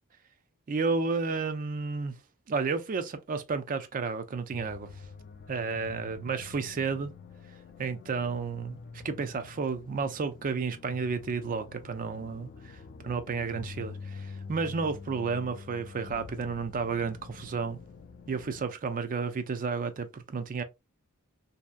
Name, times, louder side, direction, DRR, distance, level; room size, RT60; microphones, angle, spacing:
voice 1, 0.7-2.1 2.5-4.9 5.5-7.1 7.8-17.8 18.3-20.6, right 4 dB, 40° right, 0.4 m, -32 dB
sound 1, 4.5-18.7, left 4 dB, 45° left, 0.3 m, -46 dB
2.7 x 2.2 x 2.3 m
head